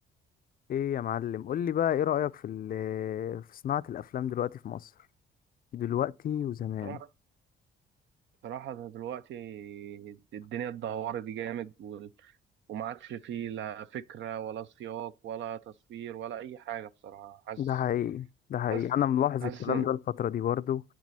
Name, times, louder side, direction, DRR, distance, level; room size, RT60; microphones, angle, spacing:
voice 1, 0.7-4.9 5.7-7.0 17.6-20.8, left 10 dB, 45° left, 0.4 m, -30 dB
voice 2, 8.4-12.3 12.7-17.6 18.7-18.9 19.4-19.9, right 10 dB, 70° right, 0.5 m, -38 dB
8.3 x 6.1 x 4.1 m
cardioid pair, 90°, 20 cm